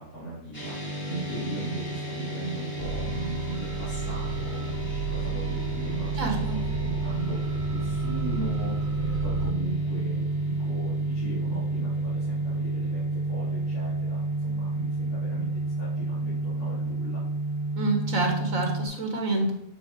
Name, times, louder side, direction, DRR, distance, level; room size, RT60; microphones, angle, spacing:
voice 1, 0.0-17.2, right 2 dB, 75° left, -13 dB, 4.1 m, -38 dB
sound 1, 0.5-18.9, right 2 dB, 30° left, 2.7 m, -30 dB
sound 2, 2.8-9.5, right 5 dB, 90° right, 1.7 m, -33 dB
voice 2, 6.2-6.6 17.8-19.5, right 2 dB, 60° right, 2 dB, 1.6 m, -27 dB
12.0 x 4.1 x 4.9 m, 0.80 s
omnidirectional pair, 1.6 m